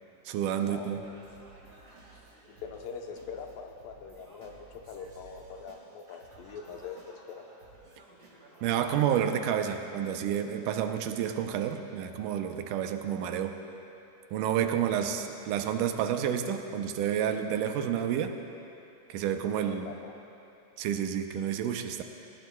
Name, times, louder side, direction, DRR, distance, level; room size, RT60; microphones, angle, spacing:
voice 1, 0.3-1.0 8.6-13.6 14.3-18.4 19.1-19.9 20.8-22.0, right 9 dB, 80° right, 6 dB, 2.2 m, -30 dB
Singing, 1.0-10.1, right 2 dB, 30° right, 1.7 m, -55 dB
voice 2, 2.5-7.4 19.6-20.1, left 6 dB, 90° left, 3 dB, 2.6 m, -43 dB
19.5 x 18.5 x 2.3 m, 2.8 s
omnidirectional pair, 3.8 m